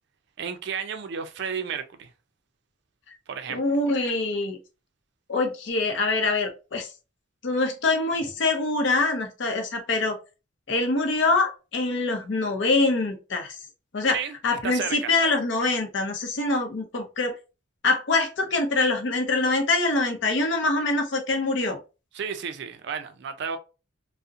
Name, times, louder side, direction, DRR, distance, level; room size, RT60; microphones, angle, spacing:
voice 1, 0.4-2.1 3.3-3.6 14.1-15.1 22.1-23.6, right 7 dB, 60° right, 0.4 m, -32 dB
voice 2, 3.5-4.6 5.3-6.9 7.4-10.2 10.7-13.5 13.9-17.4 17.8-21.8, left 3 dB, 65° left, 0.6 m, -24 dB
2.7 x 2.0 x 2.4 m
head